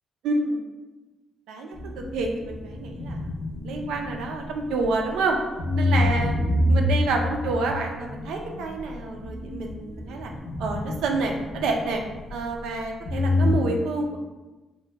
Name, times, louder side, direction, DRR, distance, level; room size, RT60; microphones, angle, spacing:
voice 1, 0.2-0.6 1.5-3.3 3.6-5.4 5.8-6.4 6.7-10.3 10.6-12.0 12.3-14.2, right 3 dB, 80° right, 2 dB, 0.4 m, -28 dB
sound 1, 1.7-5.2 5.6-12.8 13.1-13.5, left 1 dB, 70° left, 0.7 m, -27 dB
2.8 x 2.2 x 3.3 m, 1.1 s
supercardioid pair, 60°, 0 cm